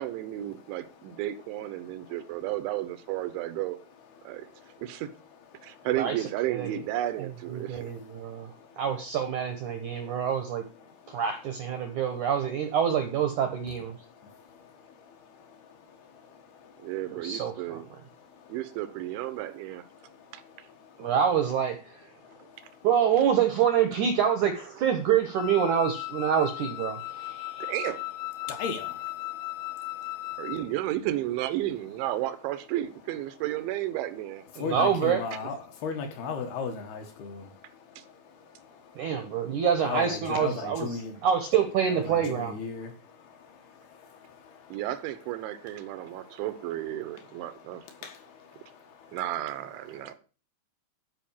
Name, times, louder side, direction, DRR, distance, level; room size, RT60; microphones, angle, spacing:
voice 1, 0.0-3.8 4.2-4.5 4.8-5.1 5.6-7.9 16.8-17.9 18.5-19.9 20.3-20.7 27.6-28.0 30.4-34.4 38.0-38.1 44.7-47.8 49.1-50.1, right 14 dB, 90° right, 3.4 m, -33 dB
voice 2, 4.2-4.8 5.6-5.9 8.4-8.8 9.9-10.2 10.8-11.2 14.2-14.7 15.0-16.8 18.4-18.5 20.1-20.5 20.8-20.9 22.3-22.7 27.3-27.6 28.4-30.4 34.6-37.7 38.0-38.1 38.6-39.1 39.8-41.2 41.9-43.0 43.2-44.8 46.0-46.4 47.9-49.2 50.1-50.2, left 5 dB, 65° left, 3.1 m, -39 dB
voice 3, 7.5-8.5 8.8-10.6 11.1-13.9 17.1-17.8 21.0-21.8 22.8-27.7 34.6-35.2 39.0-42.5, right 8 dB, 70° right, 1.8 m, -26 dB
Wind instrument woodwind instrument, 25.4-30.7, left 18 dB, 80° left, 2.5 m, -37 dB
12.5 x 5.4 x 7.3 m
omnidirectional pair, 5.2 m